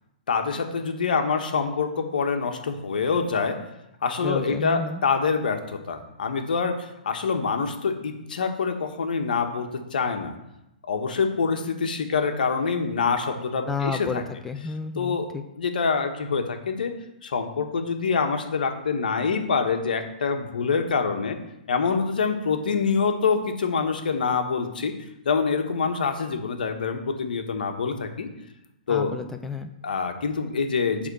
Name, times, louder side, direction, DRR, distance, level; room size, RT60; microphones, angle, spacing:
voice 1, 0.3-3.6 4.0-10.3 10.9-14.2 14.9-15.3 15.6-16.9 17.2-21.4 21.7-24.9 25.2-28.3 28.9-29.1 29.8-31.1, left 5 dB, 70° left, 5 dB, 1.3 m, -25 dB
voice 2, 4.2-5.0 13.7-15.4 28.9-29.7, left 4 dB, 5° left, 5 dB, 0.5 m, -31 dB
9.8 x 3.6 x 6.5 m, 0.89 s
hypercardioid pair, 125°, 5 cm